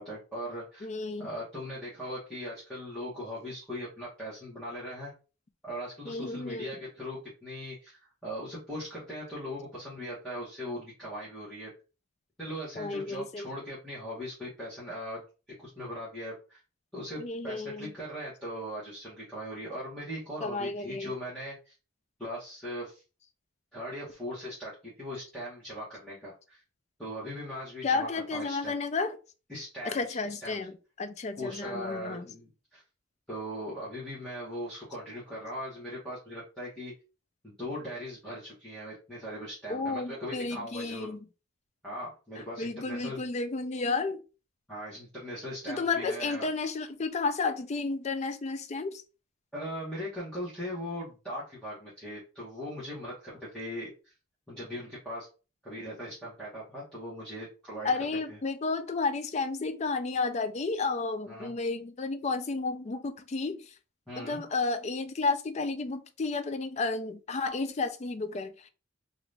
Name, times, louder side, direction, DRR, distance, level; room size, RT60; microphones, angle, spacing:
voice 1, 0.0-0.9 1.2-5.1 5.6-11.7 12.4-15.2 15.6-16.6 16.9-21.7 22.2-23.0 23.7-26.6 27.0-28.7 29.5-30.2 30.4-30.6 31.4-32.8 33.3-36.9 37.4-41.1 41.8-43.2 44.7-46.5 49.5-54.1 54.5-55.3 55.6-57.9 61.3-61.5 64.1-64.4, equal, 5° left, 1.2 m, -39 dB
voice 2, 0.8-1.3 6.1-6.7 12.8-13.5 17.2-17.9 20.4-21.1 27.8-29.2 29.8-32.3 39.7-41.2 42.4-44.2 45.7-49.0 57.8-63.7 64.2-68.7, left 3 dB, 35° left, 0.3 m, -32 dB
2.9 x 2.6 x 3.3 m
head